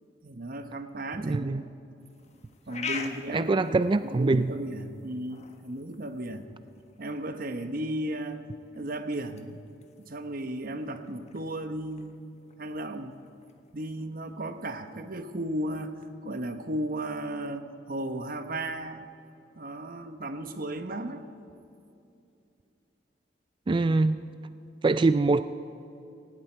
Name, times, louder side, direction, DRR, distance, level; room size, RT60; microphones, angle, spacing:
voice 1, 0.2-1.6 2.7-6.5 7.0-8.4 8.7-9.6 10.0-12.2 12.6-13.2 13.7-19.1 19.6-21.3, right 1 dB, 50° right, 8 dB, 1.0 m, -35 dB
voice 2, 1.2-1.7 3.3-4.5 23.7-24.2 24.8-25.4, right 3 dB, 25° right, 12 dB, 0.3 m, -23 dB
sound 1, 2.0-16.1, left 5 dB, 40° left, 1.2 m, -46 dB
18.5 x 17.5 x 4.5 m, 2.7 s
head